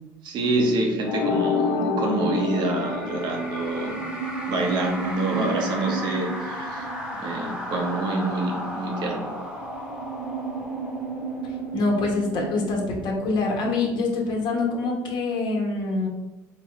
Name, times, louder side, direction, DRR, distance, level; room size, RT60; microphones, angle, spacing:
voice 1, 0.2-4.0 4.5-9.3, right 2 dB, 55° right, 1 dB, 0.9 m, -26 dB
sound 1, 1.1-4.0, left 5 dB, 80° left, 0.4 m, -27 dB
sound 2, 2.3-12.0, equal, 10° right, 1.1 m, -35 dB
sound 3, 2.3-13.2, right 5 dB, 90° right, 0.7 m, -36 dB
voice 2, 11.7-16.1, left 3 dB, 55° left, -1 dB, 1.1 m, -25 dB
4.1 x 2.2 x 3.0 m, 1.1 s
hypercardioid pair, 80°, 9 cm